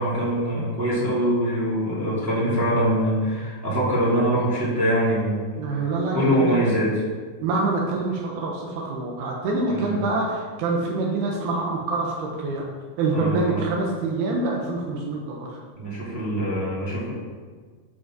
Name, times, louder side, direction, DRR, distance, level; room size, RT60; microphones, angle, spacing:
voice 1, 0.0-5.5 6.1-6.9 9.7-10.0 13.1-13.6 15.7-17.1, equal, 5° right, -8 dB, 1.3 m, -23 dB
voice 2, 5.6-6.6 7.4-12.7 13.0-15.6, right 3 dB, 75° right, -1 dB, 3.0 m, -26 dB
8.5 x 5.2 x 6.1 m, 1.5 s
omnidirectional pair, 4.6 m